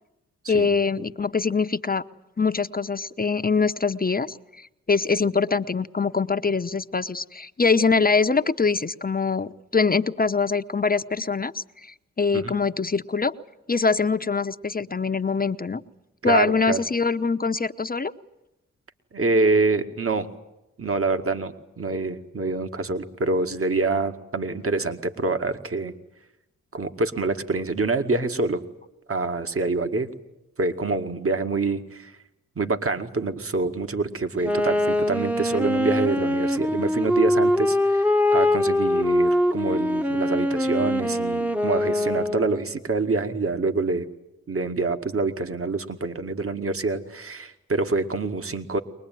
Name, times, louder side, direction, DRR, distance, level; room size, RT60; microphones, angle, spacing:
voice 1, 0.5-2.0 2.4-13.3 13.7-15.8 16.2-18.1, left 4 dB, 30° left, 10 dB, 1.0 m, -23 dB
voice 2, 16.2-16.8 19.1-20.3 20.8-25.9 26.7-28.6 29.1-30.1 30.6-32.1 32.6-44.1 44.5-48.8, right 3 dB, 45° right, 9 dB, 2.2 m, -26 dB
Wind instrument woodwind instrument, 34.4-42.7, left 1 dB, 5° right, 1.1 m, -23 dB
23.0 x 20.5 x 9.3 m, 0.89 s
cardioid pair, 55°, 32 cm